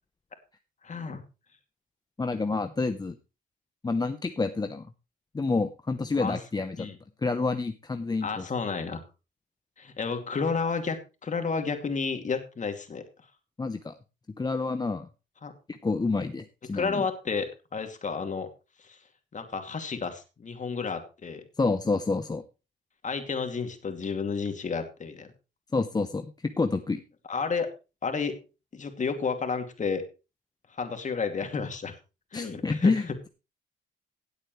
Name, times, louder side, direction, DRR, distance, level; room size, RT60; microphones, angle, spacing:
voice 1, 0.8-1.2 6.2-6.4 6.8-7.0 8.2-9.0 9.8-13.0 15.4-15.5 16.7-18.5 18.8-19.0 19.3-21.5 23.0-25.3 27.3-27.7 28.0-28.4 28.7-30.0 30.7-32.0 32.3-32.9, left 5 dB, 35° left, 6 dB, 2.5 m, -31 dB
voice 2, 2.2-3.2 3.8-4.9 5.3-6.9 7.2-8.5 13.6-13.9 14.4-15.1 15.7-17.0 21.6-22.4 25.7-27.0 32.3-33.3, left 3 dB, 20° left, 8 dB, 0.8 m, -28 dB
17.0 x 8.2 x 3.2 m, 0.30 s
cardioid pair, 85°, 20 cm